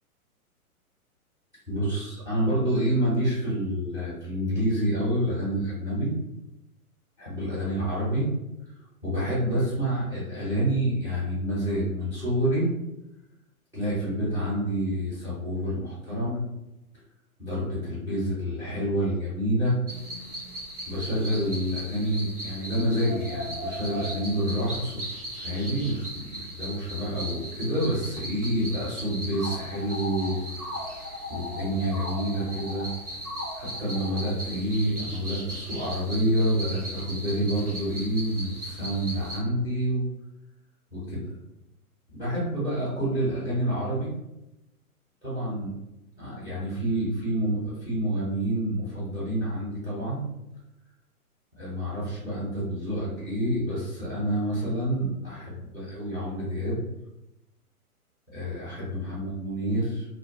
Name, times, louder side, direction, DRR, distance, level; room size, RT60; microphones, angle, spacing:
voice 1, 1.7-6.1 7.2-8.3 9.0-12.7 13.7-16.4 17.4-19.7 20.9-25.0 25.3-30.4 31.0-32.9 33.6-40.1 40.9-41.3 42.1-44.1 45.2-45.7 46.2-50.2 51.6-56.8 58.3-60.0, right 1 dB, 10° right, -11 dB, 0.7 m, -28 dB
sound 1, 19.9-39.4, equal, 85° right, 0.9 m, -37 dB
2.2 x 2.1 x 2.7 m, 0.91 s
figure-of-eight pair, 115°, 44 cm